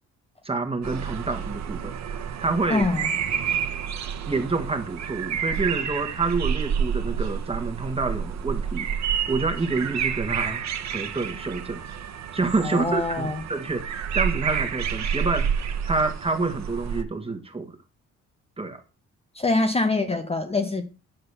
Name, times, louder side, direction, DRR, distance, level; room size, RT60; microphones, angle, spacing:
voice 1, 0.4-2.9 4.3-10.6 10.9-11.8 12.3-17.8 18.6-18.8, right 3 dB, 20° right, 1.6 m, -28 dB
sound 1, 0.8-17.0, right 7 dB, 65° right, 1.1 m, -29 dB
voice 2, 2.7-3.1 12.6-13.4 19.3-20.9, left 3 dB, 20° left, 0.8 m, -24 dB
9.0 x 4.1 x 6.7 m
cardioid pair, 90°, 30 cm